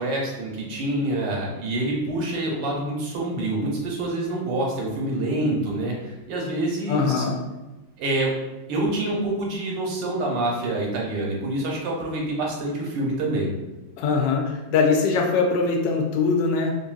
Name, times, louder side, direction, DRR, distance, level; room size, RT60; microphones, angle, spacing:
voice 1, 0.0-7.3 8.0-8.3 8.7-13.5, right 1 dB, 80° right, -2 dB, 1.4 m, -26 dB
voice 2, 6.9-7.4 14.0-16.7, left 4 dB, 75° left, 1 dB, 1.2 m, -22 dB
3.1 x 2.6 x 2.3 m, 1.1 s
omnidirectional pair, 2.0 m